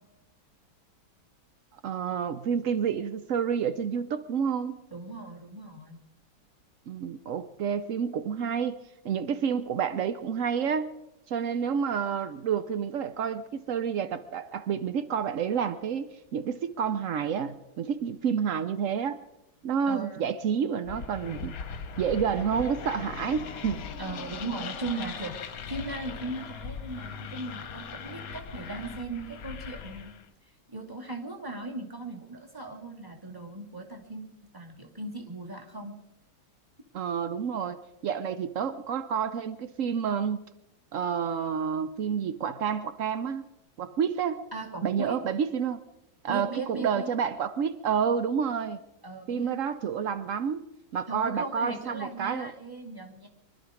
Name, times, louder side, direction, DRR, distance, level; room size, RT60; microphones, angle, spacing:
voice 1, 1.8-4.8 6.9-8.8 9.0-10.9 11.3-19.2 19.6-21.5 22.0-23.9 36.9-37.8 38.0-40.4 40.9-43.4 43.8-44.4 44.8-45.8 46.2-48.8 49.3-50.6 50.9-52.5, right 7 dB, 80° right, 11 dB, 0.7 m, -29 dB
voice 2, 4.9-6.0 19.9-20.3 24.0-30.2 30.7-36.0 44.5-45.2 46.3-47.2 49.0-49.6 51.1-53.3, right 2 dB, 10° right, 2 dB, 2.2 m, -38 dB
sound 1, 20.9-30.3, left 6 dB, 55° left, 1.2 m, -39 dB
24.0 x 12.0 x 5.0 m, 0.90 s
omnidirectional pair, 2.2 m